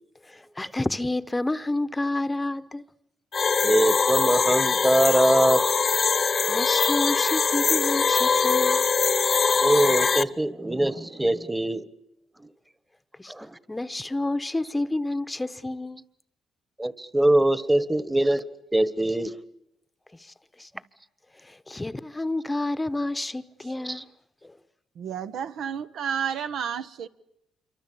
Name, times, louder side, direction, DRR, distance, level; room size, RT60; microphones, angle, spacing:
voice 1, 0.2-2.9 6.5-8.8 13.2-16.0 20.1-20.7 21.3-24.1 24.4-24.6, left 2 dB, 15° left, 1.0 m, -30 dB
sound 1, 3.3-10.2, left 5 dB, 40° left, 1.1 m, -22 dB
voice 2, 3.6-5.6 9.6-11.9 13.4-13.5 16.8-18.4 18.7-19.3 23.8-24.0, right 1 dB, 10° right, 1.4 m, -22 dB
voice 3, 25.0-27.1, right 8 dB, 75° right, 1.2 m, -31 dB
27.5 x 24.0 x 8.6 m
cardioid pair, 90°, 0 cm